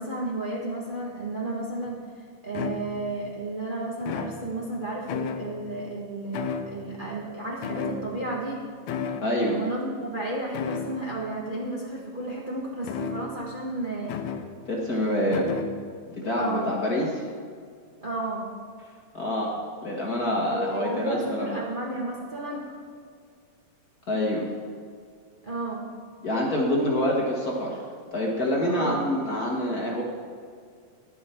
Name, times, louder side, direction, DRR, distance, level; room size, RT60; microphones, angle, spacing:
voice 1, 0.0-2.0 2.4-8.6 9.6-14.2 14.9-15.6 16.4-16.7 18.0-18.5 20.5-22.8 25.4-25.8 28.7-29.0, right 2 dB, 70° right, -4 dB, 0.4 m, -32 dB
sound 1, 1.9-2.0 2.5-3.2 4.0-4.8 5.1-5.8 6.3-7.1 7.6-8.5 8.9-9.4 10.5-11.1 12.8-13.6 14.1-14.6 15.3-15.9, left 6 dB, 80° left, 2.0 m, -33 dB
voice 2, 9.2-9.6 14.7-15.5 16.1-17.2 19.1-19.5 19.8-21.6 24.1-24.5 26.2-27.8 28.1-30.0, left 1 dB, 45° left, -2 dB, 1.2 m, -26 dB
11.0 x 10.5 x 4.3 m, 2.1 s
omnidirectional pair, 3.3 m